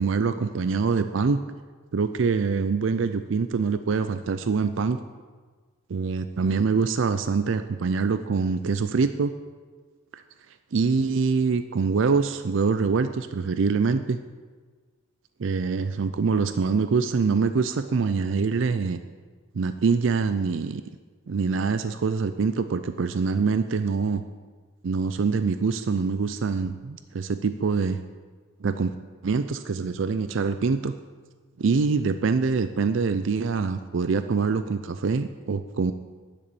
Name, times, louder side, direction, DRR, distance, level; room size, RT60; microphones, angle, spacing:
voice 1, 0.0-1.4 1.9-5.0 5.9-9.3 10.1-10.2 10.7-14.2 15.4-19.0 19.5-20.8 21.3-24.2 24.8-28.0 28.6-28.9 29.2-30.9 31.6-35.9, right 5 dB, 65° right, 10 dB, 0.4 m, -24 dB
10.5 x 6.8 x 7.0 m, 1.5 s
head